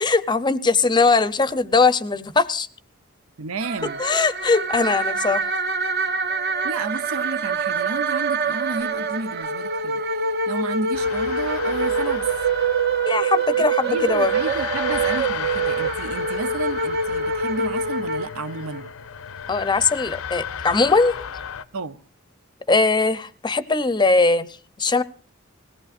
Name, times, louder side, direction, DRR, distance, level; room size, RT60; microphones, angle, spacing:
voice 1, 0.0-2.7 3.8-5.5 13.1-14.3 19.5-21.3 22.7-25.0, left 4 dB, 20° left, 0.6 m, -20 dB
voice 2, 3.4-4.0 6.6-10.0 10.5-12.3 13.6-18.9 21.7-22.0, right 3 dB, 85° right, 0.7 m, -32 dB
sound 1, 3.6-18.9, right 4 dB, 50° right, 0.9 m, -25 dB
sound 2, 10.9-21.6, left 8 dB, 75° left, 0.6 m, -34 dB
20.5 x 17.5 x 2.5 m
head